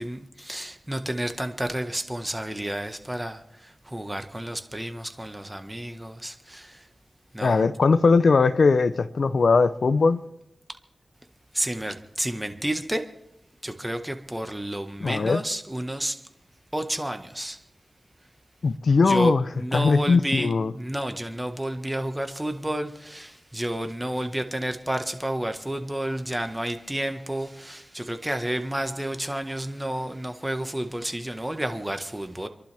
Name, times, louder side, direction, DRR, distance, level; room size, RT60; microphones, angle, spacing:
voice 1, 0.0-6.8 7.3-7.6 11.5-13.0 13.6-16.2 16.7-17.6 19.1-32.5, right 1 dB, 15° right, 1.5 m, -30 dB
voice 2, 7.4-10.2 15.0-15.4 18.6-19.4 19.7-20.7, left 4 dB, 75° left, 0.6 m, -20 dB
29.5 x 11.5 x 3.5 m
wide cardioid pair, 60°, 0 cm